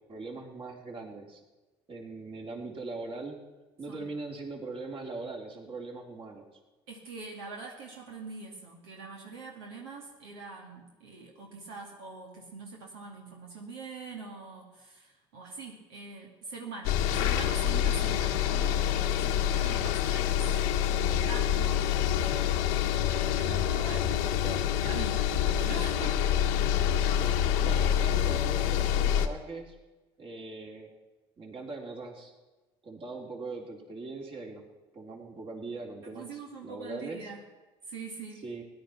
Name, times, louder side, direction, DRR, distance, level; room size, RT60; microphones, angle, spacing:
voice 1, 0.1-1.4 1.9-3.4 3.8-6.5 17.4-17.5 24.1-24.7 27.1-29.7 30.2-30.9 31.4-32.3 32.8-34.6 34.9-37.3 38.4-38.6, right 3 dB, 45° right, 0 dB, 3.8 m, -41 dB
voice 2, 6.9-20.4 20.7-22.9 23.3-24.2 24.8-26.2 36.0-37.4 37.9-38.4, right 4 dB, 85° right, -1 dB, 2.4 m, -43 dB
sound 1, 16.8-29.3, left 10 dB, 80° left, 1.1 m, -27 dB
16.5 x 11.0 x 5.9 m, 1.1 s
hypercardioid pair, 70°, 13 cm